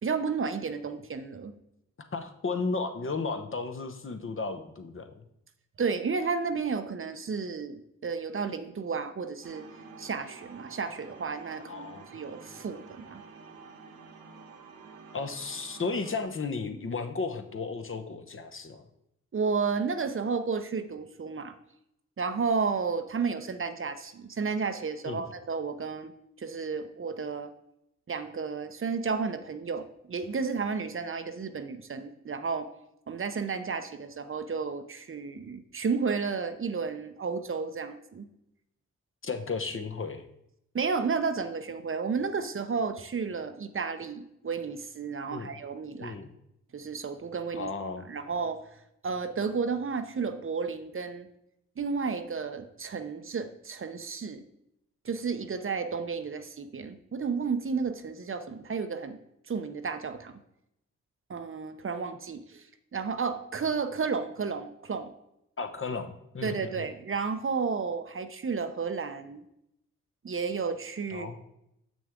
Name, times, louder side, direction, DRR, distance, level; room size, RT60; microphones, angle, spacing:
voice 1, 0.0-1.5 5.8-9.6 10.0-13.2 19.3-21.5 22.2-26.1 26.4-27.5 28.1-32.7 33.1-38.3 40.7-46.2 46.7-47.7 48.1-48.6 49.0-51.3 51.8-54.4 55.0-59.2 59.5-60.3 61.3-62.7 62.9-65.1 66.4-69.4 70.2-71.4, right 5 dB, 40° right, 9 dB, 0.7 m, -32 dB
voice 2, 2.0-5.1 11.7-12.1 15.1-18.8 25.0-25.2 39.2-40.2 45.3-45.5 46.0-46.3 47.5-48.1 65.6-66.9 71.1-71.4, left 4 dB, 40° left, 6 dB, 0.9 m, -34 dB
sound 1, 9.4-16.2, right 4 dB, 85° right, 0.9 m, -49 dB
6.9 x 6.1 x 3.6 m, 0.80 s
supercardioid pair, 40°, 33 cm